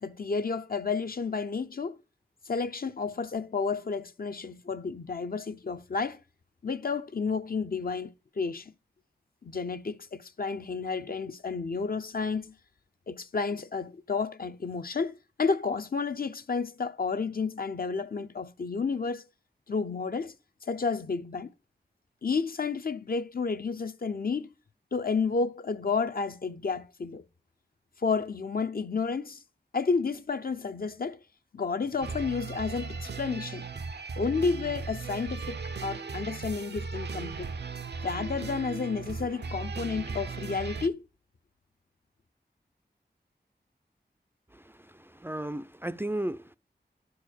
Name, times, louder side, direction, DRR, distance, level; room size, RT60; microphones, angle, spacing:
voice 1, 0.0-2.0 2.5-6.2 6.6-8.7 9.4-12.5 13.1-19.2 19.7-20.3 20.7-21.5 22.2-24.5 24.9-27.2 28.0-29.4 29.7-31.2 31.5-33.7 34.2-37.5 38.0-41.0, left 4 dB, 55° left, 0.7 m, -31 dB
sound 1, 32.0-40.9, right 4 dB, 75° right, 0.7 m, -37 dB
voice 2, 44.5-46.6, right 1 dB, 10° right, 0.4 m, -35 dB
11.0 x 4.7 x 6.5 m
wide cardioid pair, 55°, 18 cm